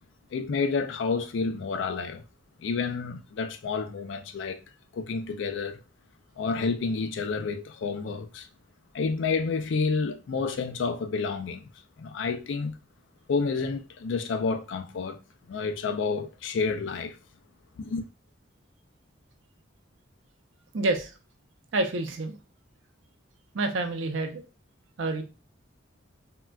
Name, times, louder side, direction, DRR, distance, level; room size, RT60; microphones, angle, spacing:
voice 1, 0.3-2.2 2.6-4.6 4.9-5.8 6.4-8.5 8.9-11.7 12.0-12.8 13.3-15.2 15.5-17.2 17.8-18.0, left 4 dB, 65° left, 0.3 m, -29 dB
voice 2, 20.7-21.1 21.7-22.4 23.5-24.4 25.0-25.2, right 2 dB, 70° right, 0.5 m, -28 dB
3.7 x 2.2 x 2.2 m
head